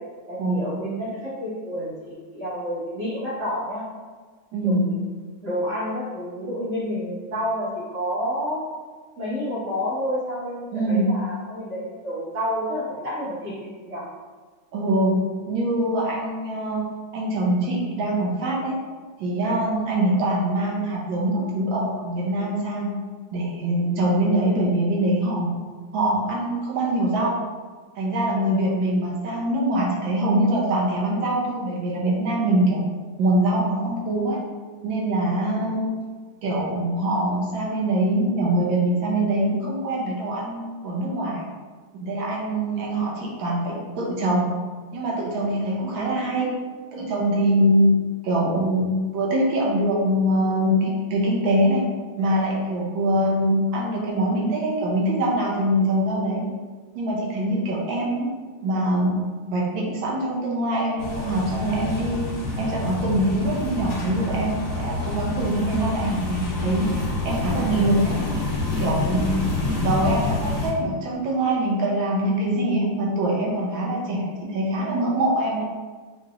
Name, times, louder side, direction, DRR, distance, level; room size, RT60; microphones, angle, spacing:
voice 1, 0.3-3.8 4.6-5.0 5.4-8.6 9.2-14.1, equal, 55° right, -9 dB, 1.9 m, -29 dB
voice 2, 4.5-4.9 10.7-11.0 14.7-15.1 15.5-16.8 17.1-18.7 19.2-22.9 23.3-25.5 25.9-27.4 28.0-32.8 33.2-34.4 34.8-35.9 36.4-41.4 41.9-44.5 44.9-46.5 46.9-47.9 48.2-51.8 52.2-56.4 56.9-58.3 58.6-59.2 59.4-62.2 62.6-66.9 67.2-68.1 68.8-69.4 69.8-75.7, right 1 dB, 80° right, -3 dB, 1.6 m, -23 dB
sound 1, 61.0-70.7, left 2 dB, 60° left, 1.2 m, -27 dB
4.8 x 2.8 x 2.5 m, 1.4 s
omnidirectional pair, 2.2 m